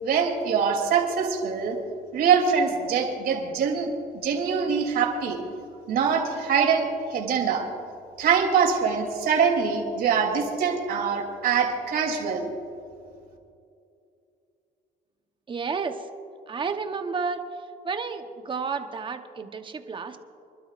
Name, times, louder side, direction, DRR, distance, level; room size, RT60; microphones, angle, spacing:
voice 1, 0.0-1.8 2.1-5.4 5.9-7.6 8.2-12.5, right 6 dB, 65° right, 1 dB, 3.1 m, -24 dB
voice 2, 15.5-16.1 16.5-17.5 17.8-20.2, right 5 dB, 30° right, 7 dB, 1.0 m, -31 dB
27.5 x 12.0 x 2.5 m, 2.5 s
cardioid pair, 110°, 17 cm